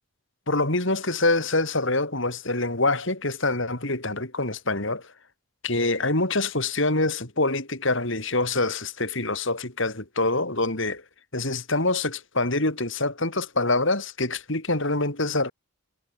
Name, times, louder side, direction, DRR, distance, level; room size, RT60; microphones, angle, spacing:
voice 1, 0.5-5.0 5.6-11.0 11.3-15.5, left 2 dB, 55° left, 3.7 m, -25 dB
head